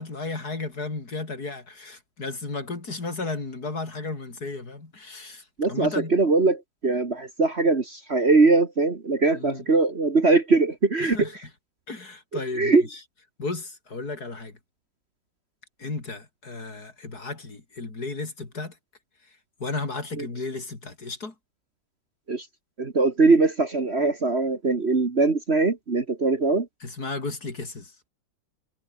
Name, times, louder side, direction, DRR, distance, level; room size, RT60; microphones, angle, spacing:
voice 1, 0.0-6.1 9.3-9.6 11.0-11.3 11.9-13.0 13.4-14.5 15.8-18.7 19.6-21.3 26.8-27.9, left 3 dB, 55° left, 4.5 m, -34 dB
voice 2, 5.6-11.3 12.6-12.9 20.2-20.3 22.3-22.5 22.8-26.7, right 3 dB, 35° right, 2.0 m, -21 dB
omnidirectional pair, 2.0 m